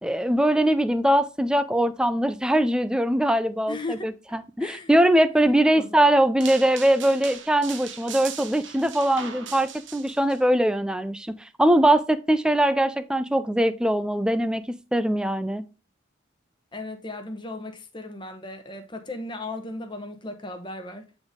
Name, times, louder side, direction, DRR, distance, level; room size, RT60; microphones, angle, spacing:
voice 1, 0.0-15.6, right 1 dB, 5° right, 0.4 m, -22 dB
voice 2, 3.7-5.0 5.3-6.0 16.7-21.0, left 2 dB, 25° left, 1.0 m, -37 dB
sound 1, 6.4-10.4, right 7 dB, 65° right, 1.0 m, -39 dB
8.8 x 4.0 x 3.6 m
head